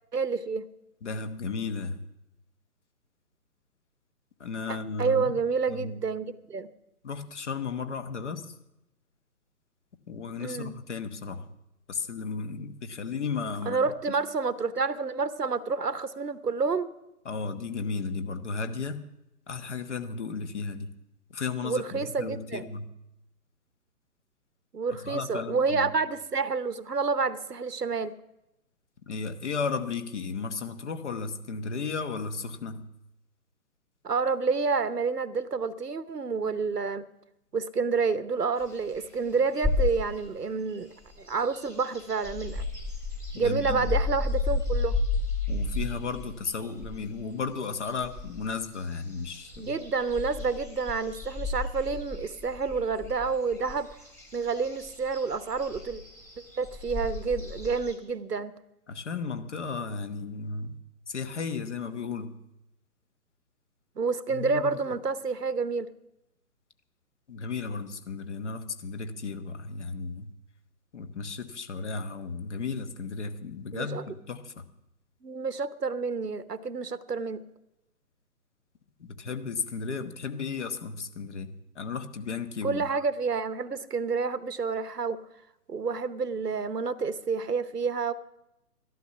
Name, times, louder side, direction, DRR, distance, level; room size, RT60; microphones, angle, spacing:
voice 1, 0.1-0.7 4.7-6.7 10.4-10.7 13.7-16.9 21.6-22.7 24.7-28.1 34.0-37.1 37.5-40.9 41.2-42.6 43.4-45.0 49.6-53.9 54.3-56.0 56.6-58.5 64.0-65.9 73.7-74.0 75.2-77.4 82.6-85.2 85.7-88.1, right 4 dB, 90° right, 14 dB, 0.9 m, -29 dB
voice 2, 1.0-2.0 4.4-5.3 5.7-5.9 7.0-8.5 10.1-11.5 11.9-13.8 14.1-14.2 17.2-19.0 19.5-20.9 21.3-22.9 25.0-25.9 29.1-32.8 43.3-43.9 45.5-49.7 58.9-60.8 61.1-62.4 64.3-64.8 67.3-70.3 70.9-74.6 79.0-82.9, left 4 dB, 50° left, 10 dB, 1.1 m, -34 dB
sound 1, 38.6-40.3 40.7-57.9, left 3 dB, 5° left, 1.4 m, -33 dB
13.5 x 12.0 x 5.7 m, 0.88 s
figure-of-eight pair, 140°, 46 cm